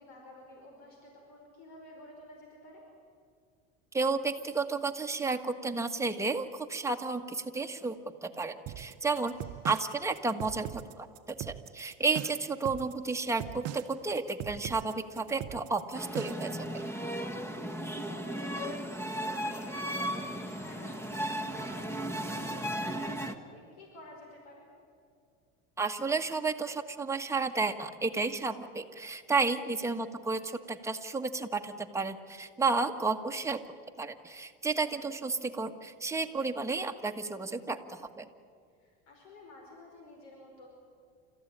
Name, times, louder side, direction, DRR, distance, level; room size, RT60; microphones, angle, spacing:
voice 1, 0.0-2.8 9.5-9.6 17.8-24.7 29.4-29.7 38.8-40.7, left 1 dB, 75° left, 1 dB, 5.2 m, -52 dB
voice 2, 3.9-8.0 8.2-9.3 9.6-16.8 25.8-33.6 34.0-38.3, right 4 dB, 10° right, 5 dB, 1.4 m, -32 dB
sound 1, 8.7-16.6, right 14 dB, 55° right, 0.8 m, -41 dB
sound 2, 15.9-23.3, equal, 10° left, 1.4 m, -36 dB
30.0 x 14.5 x 9.9 m, 2.2 s
supercardioid pair, 125°, 30 cm